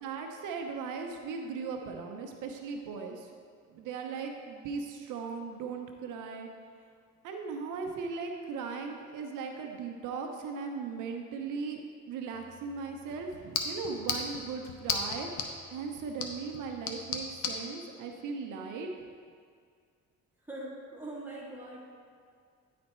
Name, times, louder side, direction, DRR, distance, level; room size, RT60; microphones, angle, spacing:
voice 1, 0.0-3.3 3.7-6.5 7.2-11.8 12.1-18.9, right 5 dB, 85° right, 3 dB, 0.7 m, -38 dB
sound 1, 12.3-17.6, left 5 dB, 85° left, 0.9 m, -37 dB
voice 2, 20.4-21.8, right 1 dB, 5° right, -5 dB, 2.1 m, -42 dB
9.9 x 4.2 x 4.3 m, 2.1 s
cardioid pair, 90°, 30 cm